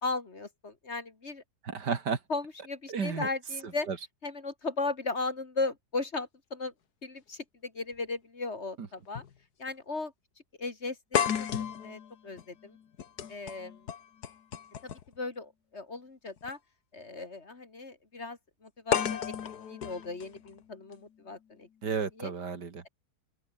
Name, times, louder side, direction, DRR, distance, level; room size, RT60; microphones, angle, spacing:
voice 1, 0.0-1.4 2.3-3.9 4.2-6.7 7.0-9.2 9.6-10.1 10.6-12.8 13.3-13.9 14.8-16.6 16.9-19.3 19.7-21.7 22.2-22.3, left 3 dB, 40° left, 2.3 m, -37 dB
voice 2, 1.6-2.2 2.9-3.3 3.9-4.0 8.8-8.9 21.8-22.8, right 5 dB, 75° right, 2.8 m, -32 dB
sound 1, 7.9-8.0 9.2-9.3 9.7-9.8 11.1-15.2 16.4-16.5 18.9-20.9, left 8 dB, 65° left, 1.8 m, -33 dB
open air
omnidirectional pair, 1.8 m